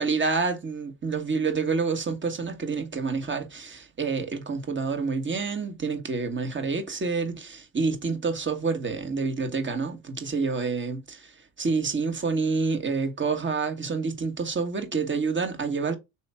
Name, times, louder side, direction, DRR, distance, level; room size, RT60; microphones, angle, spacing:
voice 1, 0.0-11.3 11.6-16.0, right 4 dB, 25° right, 1.5 m, -28 dB
4.3 x 3.1 x 3.4 m
hypercardioid pair, 70°, 42 cm